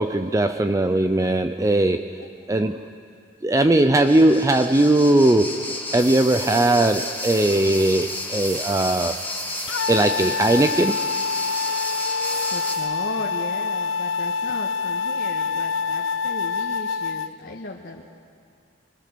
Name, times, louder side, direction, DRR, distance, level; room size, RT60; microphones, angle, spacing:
voice 1, 0.0-2.2 2.5-2.8 3.4-9.2 9.9-11.0, right 1 dB, 15° right, 8 dB, 0.5 m, -19 dB
voice 2, 2.2-2.8 11.9-18.0, left 2 dB, 65° left, -1 dB, 1.7 m, -37 dB
sound 1, 4.0-12.8, left 2 dB, 10° left, 2.4 m, -32 dB
sound 2, 6.0-12.9, right 7 dB, 45° right, 1.6 m, -39 dB
sound 3, 9.7-17.3, left 5 dB, 85° left, 0.5 m, -26 dB
26.5 x 24.5 x 6.8 m, 2.4 s
head